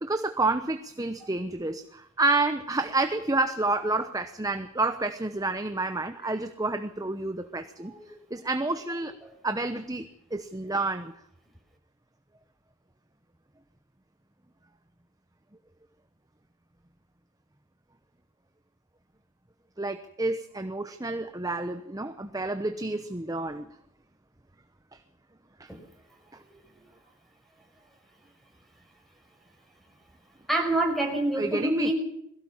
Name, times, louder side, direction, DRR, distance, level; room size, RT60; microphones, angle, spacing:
voice 1, 0.0-7.9 8.3-9.1 9.4-11.1 19.8-23.7 24.9-25.0 25.6-25.7 31.4-31.9, right 2 dB, 15° right, 9 dB, 0.9 m, -29 dB
voice 2, 30.5-31.9, right 1 dB, ahead, 3 dB, 5.8 m, -27 dB
21.5 x 16.5 x 7.2 m, 0.77 s
head